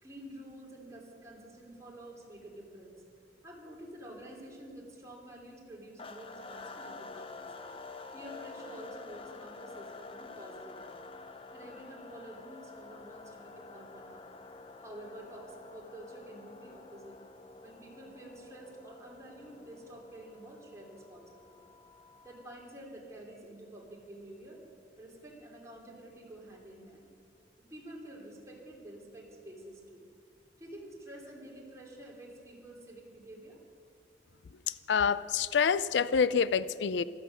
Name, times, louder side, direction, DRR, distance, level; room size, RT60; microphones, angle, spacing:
voice 1, 0.0-3.0 3.4-7.5 8.1-11.0 11.5-14.3 14.8-17.2 17.6-21.7 22.2-24.6 25.0-27.1 27.6-30.0 30.6-33.6, right 1 dB, 15° right, -2 dB, 2.9 m, -49 dB
sound 1, 6.0-22.7, left 3 dB, 30° left, 0.8 m, -49 dB
voice 2, 34.9-37.0, left 6 dB, 75° left, 17 dB, 0.4 m, -27 dB
15.0 x 13.5 x 6.4 m, 2.2 s
head